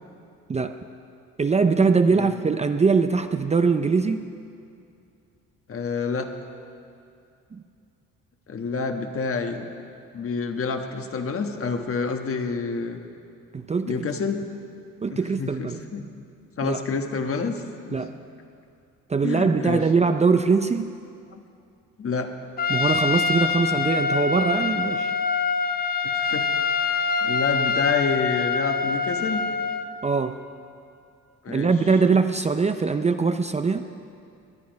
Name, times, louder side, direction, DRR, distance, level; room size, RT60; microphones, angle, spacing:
voice 1, 1.4-4.3 7.5-7.6 13.5-14.0 15.0-15.8 16.6-16.8 17.9-18.2 19.1-20.9 22.7-25.1 30.0-30.4 31.5-33.9, right 4 dB, 20° right, 8 dB, 0.5 m, -22 dB
voice 2, 5.7-6.3 8.5-9.7 10.1-13.0 13.8-14.4 15.1-16.1 16.6-17.5 17.9-18.0 19.2-19.9 21.3-21.4 22.0-22.3 26.1-26.5 27.2-29.4 31.4-31.7, left 5 dB, 45° left, 5 dB, 1.3 m, -28 dB
Trumpet, 22.6-29.9, left 5 dB, 30° left, 0.7 m, -25 dB
19.5 x 10.5 x 5.2 m, 2.5 s
cardioid pair, 90°, 30 cm